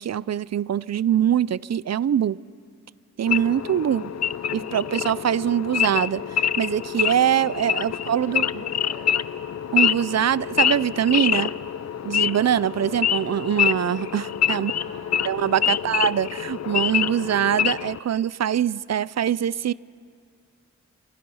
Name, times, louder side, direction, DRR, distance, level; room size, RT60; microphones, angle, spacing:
voice 1, 0.0-2.4 3.2-4.1 4.5-8.5 9.7-11.5 12.0-14.7 15.3-19.7, right 9 dB, 65° right, 20 dB, 0.5 m, -23 dB
Wild animals / Idling, 3.3-18.0, left 9 dB, 65° left, 0.5 m, -26 dB
voice 2, 4.4-5.2 7.9-9.2 14.5-15.3 15.7-16.0, equal, 25° left, 1 dB, 5.2 m, -46 dB
27.5 x 25.0 x 5.6 m, 2.2 s
wide cardioid pair, 110°, 29 cm